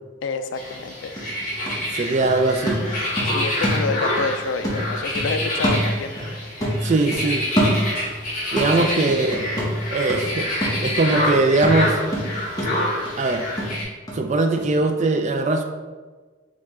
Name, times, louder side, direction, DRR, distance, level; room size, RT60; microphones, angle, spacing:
voice 1, 0.2-1.1 3.2-6.1 8.8-8.9, left 4 dB, 65° left, 9 dB, 0.3 m, -28 dB
sound 1, 0.5-13.8, left 1 dB, 45° left, 1.4 m, -27 dB
sound 2, 0.7-0.8 1.2-4.3 4.6-6.3 6.6-8.2 8.6-14.2 14.6-14.7, equal, 20° left, 1.0 m, -26 dB
voice 2, 1.9-2.8 6.8-7.4 8.5-9.5 9.9-12.0 13.2-13.4 14.1-15.6, right 2 dB, 35° right, 6 dB, 0.3 m, -21 dB
4.7 x 3.0 x 3.6 m, 1.4 s
head